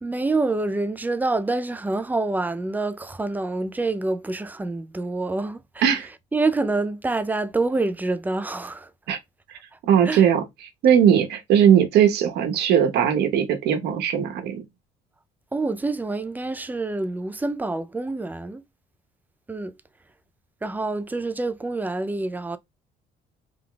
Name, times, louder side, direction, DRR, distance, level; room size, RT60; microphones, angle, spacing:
voice 1, 0.0-5.9 6.3-8.9 9.7-9.8 10.0-10.2 15.5-18.6 19.5-19.8 20.6-22.6, right 2 dB, 10° right, 0.4 m, -27 dB
voice 2, 9.5-10.4 10.8-14.6, right 9 dB, 75° right, 1.0 m, -19 dB
3.4 x 2.3 x 3.7 m
cardioid pair, 110°, 17 cm